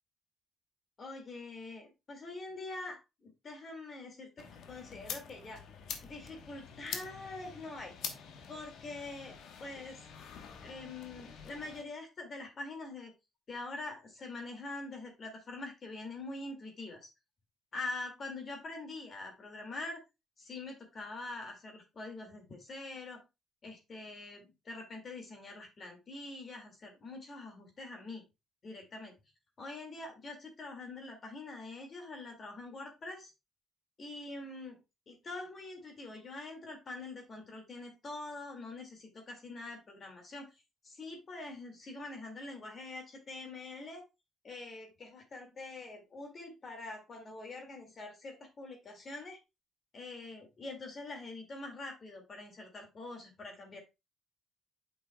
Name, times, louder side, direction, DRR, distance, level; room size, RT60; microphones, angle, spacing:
voice 1, 1.0-5.6 6.0-7.9 8.5-10.1 10.6-13.1 13.5-17.1 17.7-20.0 20.4-23.2 23.6-28.2 28.6-29.1 29.6-33.3 34.0-34.8 35.1-44.0 44.4-49.4 49.9-53.8, left 2 dB, 45° left, 3 dB, 2.1 m, -44 dB
sound 1, 4.4-11.8, left 7 dB, 80° left, 1.0 m, -46 dB
8.5 x 5.5 x 2.2 m, 0.24 s
cardioid pair, 90°, 0 cm